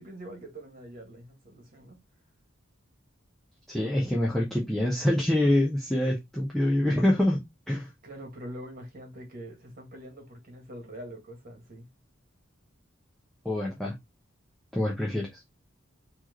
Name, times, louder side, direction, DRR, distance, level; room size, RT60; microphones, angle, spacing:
voice 1, 0.0-2.0 8.0-11.9, right 1 dB, 45° right, 1.7 m, -44 dB
voice 2, 3.7-7.4 7.7-7.9 13.4-13.9 14.7-15.3, left 1 dB, ahead, 0.8 m, -25 dB
4.4 x 3.1 x 2.9 m
head